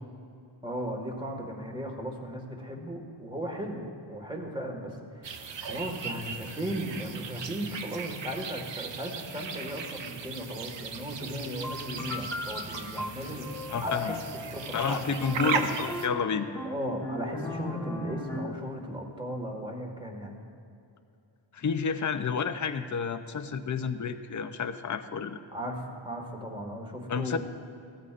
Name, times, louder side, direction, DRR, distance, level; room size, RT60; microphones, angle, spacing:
voice 1, 0.6-15.7 16.6-20.4 25.5-27.4, equal, 10° right, 1 dB, 1.7 m, -36 dB
sound 1, 5.2-16.1, right 6 dB, 65° right, 0.9 m, -37 dB
sound 2, 11.6-18.7, left 2 dB, 5° left, 1.2 m, -37 dB
voice 2, 13.7-14.2 14.7-16.5 21.5-25.4 27.1-27.4, left 6 dB, 40° left, 9 dB, 0.7 m, -30 dB
17.0 x 14.0 x 2.5 m, 2.6 s
wide cardioid pair, 115°, 48 cm